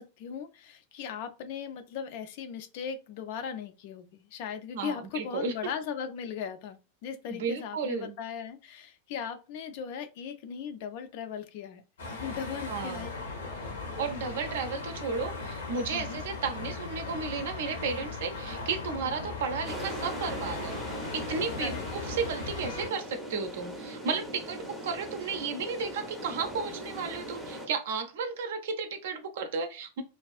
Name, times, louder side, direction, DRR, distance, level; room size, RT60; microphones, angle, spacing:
voice 1, 0.0-13.7 15.9-16.2 21.6-21.8, left 7 dB, 50° left, 0.3 m, -38 dB
voice 2, 4.7-5.5 7.3-8.2 12.7-13.1 14.0-20.8 21.1-30.0, right 5 dB, 55° right, 0.5 m, -33 dB
sound 1, 12.0-22.9, left 3 dB, 65° left, 0.7 m, -38 dB
sound 2, 19.7-27.7, equal, ahead, 0.6 m, -40 dB
2.4 x 2.3 x 2.4 m
figure-of-eight pair, 90°, 0 cm